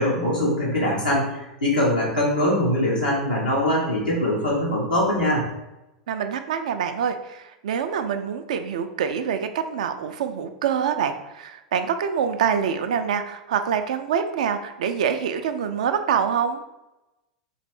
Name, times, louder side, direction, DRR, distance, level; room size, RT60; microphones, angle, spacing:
voice 1, 0.0-5.4, left 1 dB, 90° left, -6 dB, 1.0 m, -22 dB
voice 2, 6.1-16.6, right 7 dB, 65° right, 8 dB, 0.4 m, -25 dB
4.2 x 2.5 x 3.4 m, 0.95 s
figure-of-eight pair, 85°, 4 cm